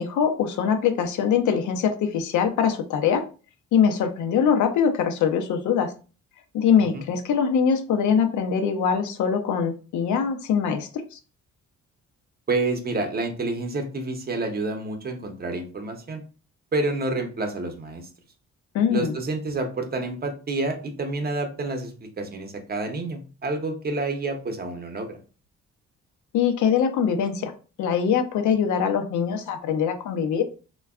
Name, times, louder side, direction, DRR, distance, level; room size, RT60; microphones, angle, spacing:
voice 1, 0.0-3.2 3.7-5.9 6.5-11.2 18.7-19.2 26.3-27.5 27.8-30.4, left 7 dB, 75° left, 6 dB, 0.6 m, -23 dB
voice 2, 12.5-16.2 16.7-18.1 18.9-25.2, right 2 dB, 30° right, 5 dB, 0.7 m, -29 dB
3.3 x 2.2 x 2.3 m, 0.36 s
cardioid pair, 90°, 30 cm